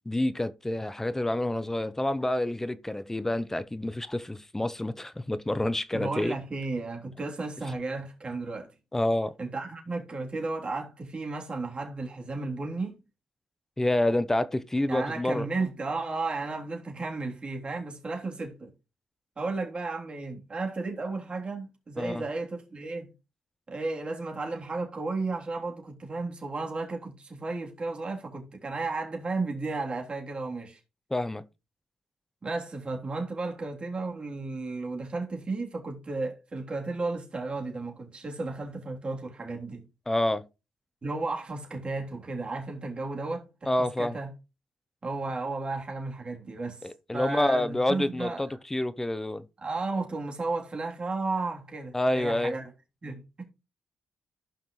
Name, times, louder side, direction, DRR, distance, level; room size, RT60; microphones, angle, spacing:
voice 1, 0.0-6.4 8.9-9.3 13.8-15.5 22.0-22.2 31.1-31.4 40.1-40.4 43.7-44.2 46.8-49.4 51.9-52.5, left 1 dB, 10° left, 0.7 m, -28 dB
voice 2, 5.9-8.7 9.4-13.0 14.9-18.7 19.4-23.1 23.7-30.8 32.4-39.8 41.0-44.3 45.0-48.4 49.6-52.6 53.0-53.4, right 3 dB, 35° right, 3.4 m, -34 dB
15.0 x 5.8 x 3.2 m
cardioid pair, 85°, 3 cm